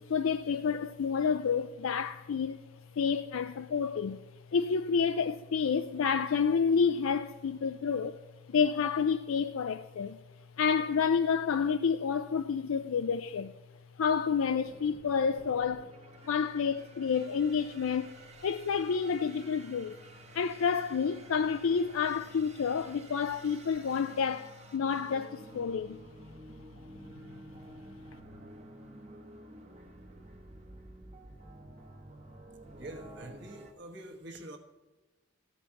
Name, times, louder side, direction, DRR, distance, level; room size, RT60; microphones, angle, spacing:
voice 1, 0.0-2.6 3.0-4.2 4.5-8.2 8.5-10.2 10.6-13.5 14.0-15.9 16.3-18.1 18.4-20.0 20.3-26.0, left 6 dB, 85° left, 0.4 m, -29 dB
sound 1, 14.6-33.7, right 1 dB, 30° right, 1.0 m, -51 dB
voice 2, 32.8-34.6, right 1 dB, 55° right, 1.4 m, -45 dB
14.5 x 5.4 x 8.7 m
head